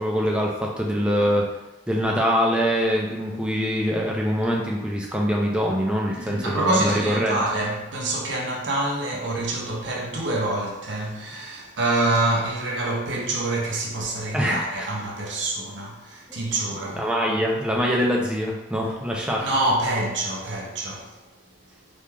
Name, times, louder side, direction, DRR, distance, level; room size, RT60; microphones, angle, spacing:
voice 1, 0.0-1.5 1.9-7.4 14.3-14.9 16.3-16.4 16.9-19.5, equal, 5° right, 0.3 m, -24 dB
voice 2, 6.1-17.1 19.4-21.2, right 2 dB, 75° right, 0.6 m, -26 dB
3.2 x 2.4 x 2.2 m
head